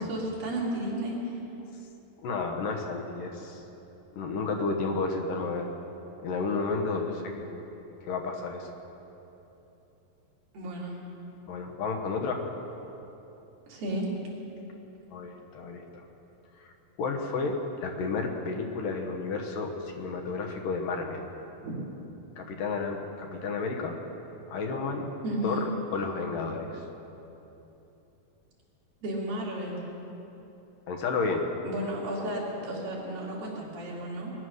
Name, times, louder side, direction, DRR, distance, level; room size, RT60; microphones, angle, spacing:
voice 1, 0.0-1.4 10.5-11.0 13.7-14.1 21.6-21.8 25.2-25.7 29.0-29.8 31.6-34.3, right 1 dB, 75° right, -4 dB, 4.7 m, -33 dB
voice 2, 2.2-3.6 4.2-5.7 6.2-7.5 8.0-8.7 11.5-12.5 15.1-16.0 16.6-16.7 17.0-21.3 22.4-24.0 24.5-25.1 25.4-25.6 25.9-26.8 30.9-31.5, left 4 dB, 70° left, 2 dB, 2.8 m, -31 dB
20.5 x 11.0 x 6.4 m, 3.0 s
omnidirectional pair, 4.1 m